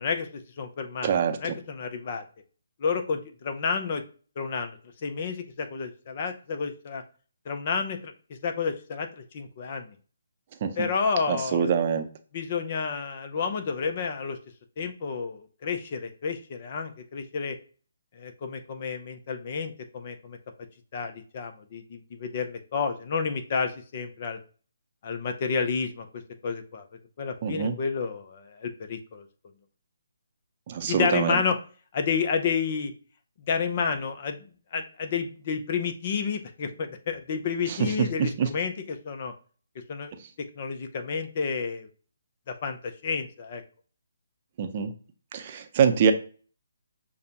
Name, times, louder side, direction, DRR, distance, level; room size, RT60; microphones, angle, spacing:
voice 1, 0.0-1.1 1.4-2.2 2.8-4.0 4.4-7.0 7.5-8.1 8.4-9.9 10.8-11.7 12.3-14.4 14.8-17.6 18.1-20.4 20.9-24.4 25.0-26.1 26.4-26.9 27.2-29.3 30.9-31.6 31.9-32.9 33.5-34.5 34.7-39.3 39.9-40.1 40.6-41.9 42.5-43.6, left 5 dB, 40° left, 6 dB, 0.7 m, -30 dB
voice 2, 1.0-1.4 10.6-10.7 11.3-12.0 27.4-27.7 30.7-31.4 38.0-38.1 38.4-38.5 44.6-44.9 45.3-46.1, right 7 dB, 35° right, 6 dB, 0.6 m, -24 dB
6.7 x 2.2 x 2.9 m, 0.40 s
figure-of-eight pair, 145°, 0 cm